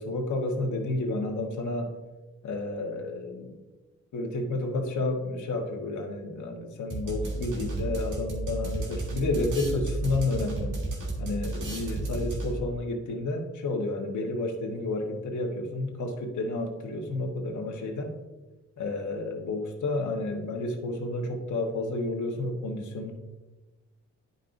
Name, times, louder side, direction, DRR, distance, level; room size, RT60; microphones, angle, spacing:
voice 1, 0.0-1.9 2.4-3.6 4.1-10.7 11.2-18.1 18.8-23.1, left 2 dB, 70° left, 2 dB, 1.3 m, -31 dB
sound 1, 6.9-12.8, right 2 dB, 85° right, 1.8 m, -32 dB
10.5 x 5.4 x 2.6 m, 1.1 s
wide cardioid pair, 145°, 31 cm